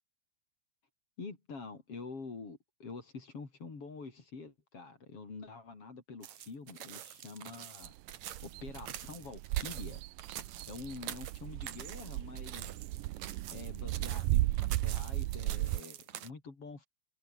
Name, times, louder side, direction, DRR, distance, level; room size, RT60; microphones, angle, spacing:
voice 1, 1.2-7.9 8.4-10.0 10.7-12.7 13.5-14.4 14.7-16.9, left 4 dB, 35° left, 4.6 m, -46 dB
sound 1, 6.2-16.3, right 11 dB, 60° right, 2.1 m, -46 dB
sound 2, 7.8-15.8, right 17 dB, 80° right, 1.9 m, -35 dB
omnidirectional pair, 4.7 m